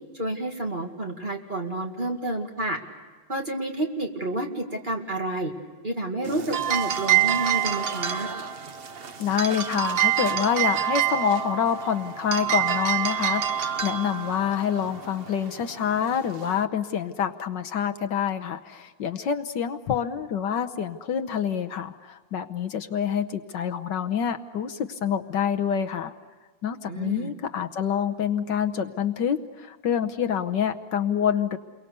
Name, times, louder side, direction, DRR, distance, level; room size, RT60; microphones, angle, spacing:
voice 1, 0.1-2.8 3.3-5.5 5.8-8.3 26.9-27.3, right 2 dB, 25° right, 2 dB, 2.2 m, -30 dB
sound 1, 6.2-16.6, right 10 dB, 55° right, 0.6 m, -27 dB
voice 2, 9.2-26.1 26.6-31.6, left 8 dB, 70° left, 7 dB, 1.5 m, -27 dB
29.5 x 23.0 x 6.7 m, 1.4 s
omnidirectional pair, 2.1 m